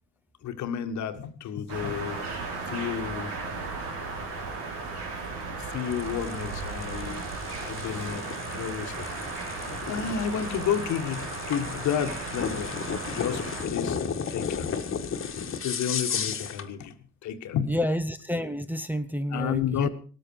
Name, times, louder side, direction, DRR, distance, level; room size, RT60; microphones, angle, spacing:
voice 1, 0.4-2.3 2.7-3.3 5.5-7.2 7.6-9.1 9.9-12.8 13.1-14.0 14.3-14.7 15.6-16.9 17.2-17.8 19.3-19.9, left 8 dB, 50° left, 8 dB, 1.6 m, -31 dB
sound 1, 1.7-13.7, right 3 dB, 65° right, 3.3 m, -35 dB
sound 2, 5.7-16.7, left 6 dB, 35° left, 1.7 m, -34 dB
voice 2, 17.7-19.9, equal, 5° right, 7 dB, 0.9 m, -29 dB
18.5 x 13.5 x 4.7 m, 0.40 s
figure-of-eight pair, 50°, 36 cm